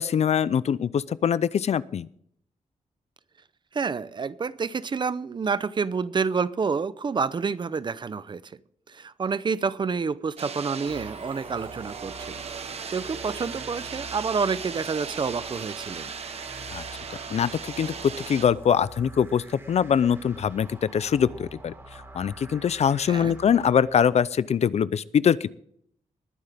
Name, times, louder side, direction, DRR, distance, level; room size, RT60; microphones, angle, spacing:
voice 1, 0.0-2.1 16.7-16.8 17.3-25.5, left 8 dB, 55° left, 18 dB, 0.5 m, -23 dB
voice 2, 3.7-8.6 8.9-12.4 12.7-16.1 23.1-23.3, right 5 dB, 35° right, 16 dB, 0.6 m, -28 dB
sound 1, 10.4-18.5, right 6 dB, 55° right, 1.2 m, -37 dB
sound 2, 10.8-24.3, right 1 dB, 20° right, 3.5 m, -46 dB
20.5 x 9.7 x 3.5 m, 0.65 s
wide cardioid pair, 140°, 13 cm